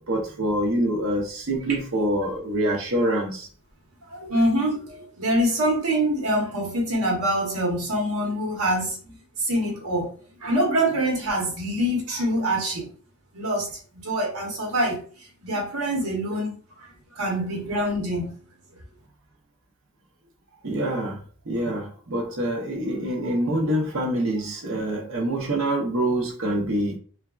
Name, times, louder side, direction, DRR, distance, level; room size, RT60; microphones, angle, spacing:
voice 1, 0.0-3.5 20.6-27.0, right 1 dB, 60° right, 0.7 m, -26 dB
voice 2, 4.1-12.9 13.3-13.7 13.9-15.0 15.4-16.6 17.1-18.3, right 1 dB, 90° right, 1.1 m, -25 dB
3.3 x 2.2 x 2.3 m
head